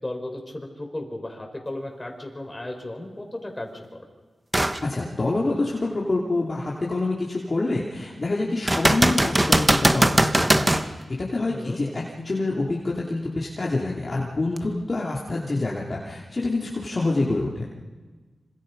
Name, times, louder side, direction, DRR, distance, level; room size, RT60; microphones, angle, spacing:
voice 1, 0.0-4.1 11.5-11.8, left 1 dB, 20° left, 2 dB, 5.3 m, -35 dB
sound 1, 4.5-4.8 5.4-5.5 8.7-10.9 14.6-14.7, right 1 dB, 15° right, 1.3 m, -20 dB
voice 2, 4.8-17.7, left 2 dB, 40° left, -3 dB, 2.9 m, -27 dB
27.0 x 26.5 x 5.5 m, 1.3 s
wide cardioid pair, 85°, 0 cm